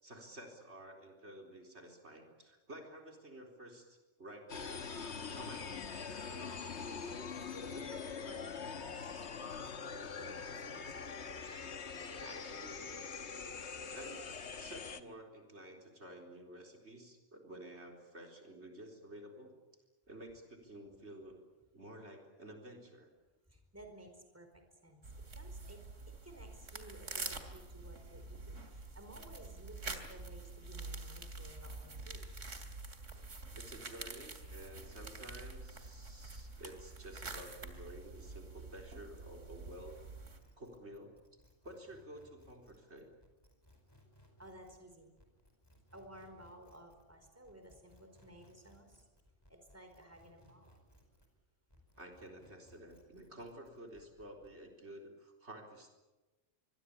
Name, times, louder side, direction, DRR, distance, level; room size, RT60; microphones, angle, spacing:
voice 1, 0.0-4.5 5.3-5.9 12.2-13.0 13.9-14.3 14.6-19.5 20.1-21.4 21.7-23.1 33.5-39.9 40.6-41.1 41.6-43.1 52.0-55.9, right 1 dB, 65° right, 2 dB, 4.4 m, -52 dB
sound 1, 4.5-15.0, left 5 dB, 65° left, 1.6 m, -43 dB
voice 2, 6.7-11.1 23.5-25.0 25.3-32.3 44.4-45.1 45.9-49.1 49.5-50.8 51.7-51.8, right 1 dB, 10° right, 5 dB, 4.5 m, -56 dB
sound 2, 25.0-40.4, right 3 dB, 85° right, 3.1 m, -47 dB
sound 3, 39.2-51.4 51.7-54.6, left 1 dB, 20° left, 4.8 m, -65 dB
25.5 x 22.5 x 8.6 m, 1.1 s
omnidirectional pair, 1.2 m